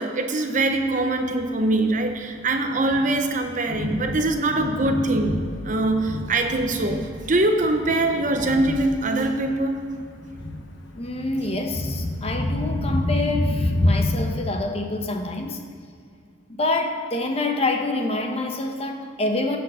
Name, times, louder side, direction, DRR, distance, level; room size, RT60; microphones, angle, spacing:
voice 1, 0.0-9.8, right 2 dB, 40° right, 5 dB, 0.9 m, -23 dB
Thunder, 0.7-14.4, left 1 dB, 65° left, 1.1 m, -29 dB
voice 2, 10.9-15.6 16.5-19.6, left 2 dB, 30° left, 4 dB, 1.0 m, -27 dB
16.0 x 5.4 x 6.3 m, 2.3 s
head